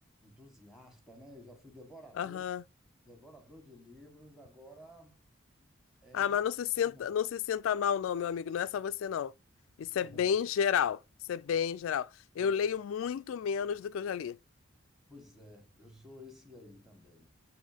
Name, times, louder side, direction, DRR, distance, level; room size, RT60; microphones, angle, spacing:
voice 1, 0.2-2.4 3.0-5.2 5.6-5.7 6.0-6.4 6.8-7.0 9.8-10.3 12.3-12.6 15.1-17.3, left 1 dB, ahead, 1.4 m, -53 dB
voice 2, 2.2-2.6 6.1-9.3 9.8-11.0 11.3-12.1 12.4-14.4, left 8 dB, 85° left, 0.3 m, -31 dB
7.3 x 3.0 x 4.9 m
head